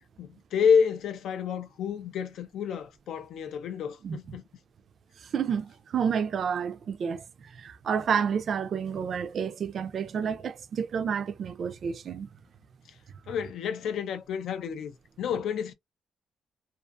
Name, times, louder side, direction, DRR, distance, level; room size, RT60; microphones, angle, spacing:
voice 1, 0.2-4.4 13.3-15.7, left 7 dB, 75° left, 0.5 m, -29 dB
voice 2, 5.2-12.3, right 7 dB, 50° right, 0.4 m, -30 dB
2.4 x 2.4 x 2.5 m
cardioid pair, 140°, 0 cm